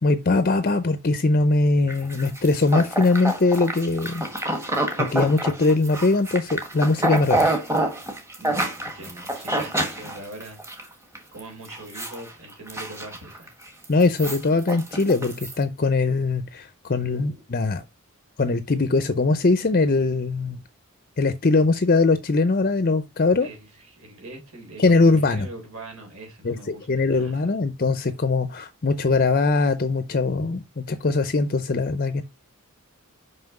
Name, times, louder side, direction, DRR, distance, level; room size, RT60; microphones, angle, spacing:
voice 1, 0.0-4.2 5.0-7.6 13.9-17.8 18.4-20.6 21.2-23.5 24.8-25.5 26.4-32.2, left 3 dB, 40° left, 0.6 m, -21 dB
sound 1, 1.9-10.8 11.2-11.4 11.6-12.2 12.5-13.5 13.8-15.5, right 1 dB, 15° right, 1.5 m, -27 dB
voice 2, 8.4-10.6 11.3-13.6 17.2-17.4 23.4-27.5, right 2 dB, 70° right, 3.8 m, -42 dB
5.9 x 5.6 x 5.2 m
head